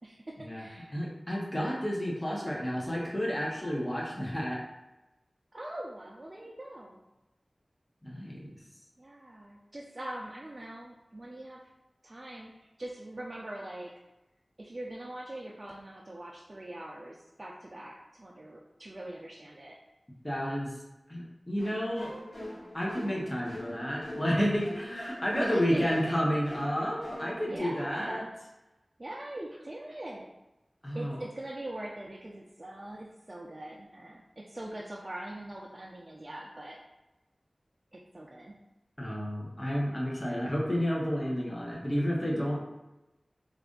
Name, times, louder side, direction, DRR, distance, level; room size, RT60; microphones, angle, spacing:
voice 1, 0.0-1.0 5.5-7.0 9.0-11.6 12.0-13.9 14.6-19.7 25.1-26.2 27.5-28.4 29.0-30.3 30.9-36.8 37.9-38.6, right 1 dB, 45° right, -3 dB, 0.5 m, -42 dB
voice 2, 0.9-4.6 8.0-8.5 20.2-20.7 21.1-22.1 22.7-28.2 30.8-31.2 39.0-42.6, equal, 25° left, -3 dB, 1.0 m, -31 dB
sound 1, 21.6-27.6, left 1 dB, 80° left, 1.2 m, -44 dB
3.3 x 2.5 x 3.8 m, 0.98 s
wide cardioid pair, 40°, 0 cm